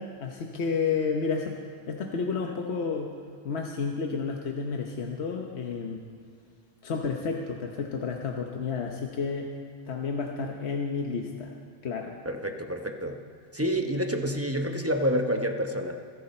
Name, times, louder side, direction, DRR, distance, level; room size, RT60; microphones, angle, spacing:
voice 1, 0.0-1.5 1.9-3.1 3.4-6.0 6.8-9.5 9.9-11.5 11.8-12.2, left 5 dB, 80° left, 1 dB, 1.3 m, -31 dB
voice 2, 12.2-13.2 13.5-16.0, equal, 15° right, 4 dB, 0.9 m, -28 dB
27.0 x 11.0 x 4.3 m, 2.1 s
omnidirectional pair, 1.1 m